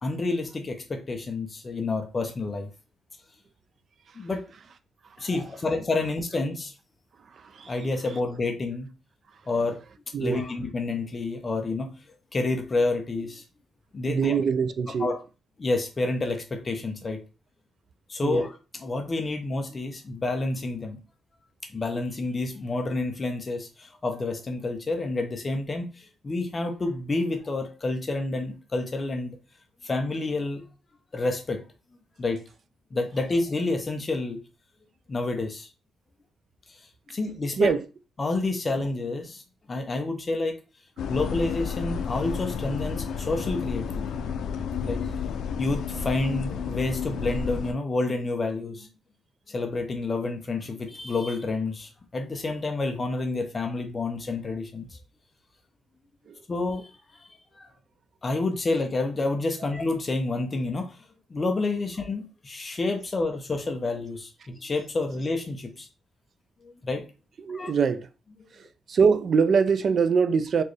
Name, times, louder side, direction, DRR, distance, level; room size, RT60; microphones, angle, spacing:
voice 1, 0.0-2.7 4.2-4.4 5.2-6.7 7.7-8.9 9.5-9.8 10.2-11.9 12.3-13.4 13.9-14.4 15.0-15.2 15.6-17.2 18.1-21.0 21.6-29.4 29.8-30.6 31.1-31.6 32.2-32.4 32.9-34.4 35.1-35.7 36.7-36.8 37.1-37.7 38.2-39.4 39.7-40.6 41.1-44.0 44.8-45.1 45.6-48.9 49.5-55.0 56.5-57.7 58.2-61.0 61.3-65.9 66.6-67.0 67.5-67.7, left 2 dB, 25° left, 0.6 m, -29 dB
voice 2, 14.1-15.1 18.2-18.5 37.6-37.8 56.3-56.4 67.4-68.1 68.9-70.6, right 6 dB, 45° right, 0.4 m, -23 dB
sound 1, 41.0-47.7, left 6 dB, 80° left, 0.5 m, -31 dB
4.3 x 3.0 x 3.2 m
wide cardioid pair, 160°, 0 cm